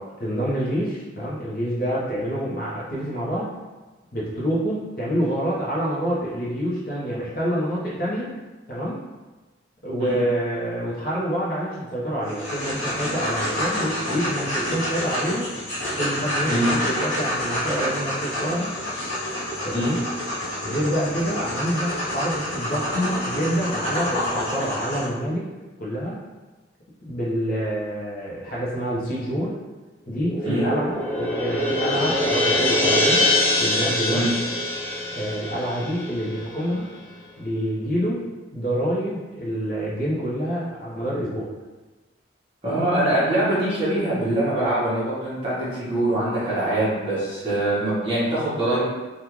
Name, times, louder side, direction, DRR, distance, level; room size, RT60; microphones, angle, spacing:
voice 1, 0.2-3.5 4.1-8.3 8.7-9.0 9.8-15.5 15.9-18.7 19.6-20.0 20.6-25.5 25.8-26.2 27.1-29.6 30.1-33.3 33.6-34.3 35.1-36.9 37.4-41.5, equal, 50° left, -7 dB, 0.8 m, -27 dB
sound 1, 12.2-25.0, left 1 dB, 75° left, 1.4 m, -28 dB
sound 2, 30.2-36.7, left 1 dB, 10° left, 0.4 m, -23 dB
voice 2, 42.6-48.8, right 1 dB, 25° right, -10 dB, 1.2 m, -23 dB
3.6 x 2.4 x 3.0 m, 1.2 s
head